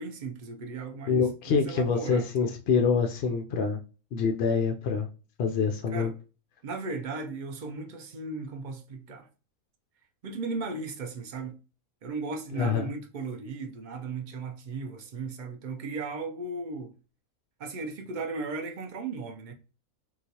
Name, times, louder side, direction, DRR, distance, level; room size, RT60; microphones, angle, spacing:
voice 1, 0.0-2.5 5.9-6.1 6.6-9.3 10.2-11.6 12.0-16.9 17.6-19.5, right 3 dB, 55° right, 0.5 m, -36 dB
voice 2, 1.1-3.8 4.1-5.1 5.4-6.1 12.6-12.9, left 5 dB, 65° left, 0.6 m, -26 dB
3.9 x 2.4 x 2.8 m
omnidirectional pair, 1.5 m